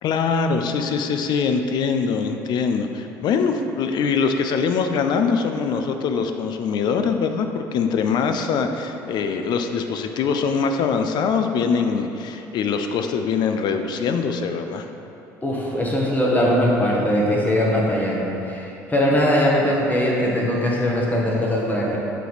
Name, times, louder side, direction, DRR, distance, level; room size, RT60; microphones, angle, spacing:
voice 1, 0.0-14.8, left 5 dB, 60° left, 6 dB, 0.5 m, -23 dB
voice 2, 15.4-22.0, equal, 20° left, -3 dB, 1.1 m, -21 dB
7.3 x 3.5 x 4.1 m, 3.0 s
supercardioid pair, 75°, 8 cm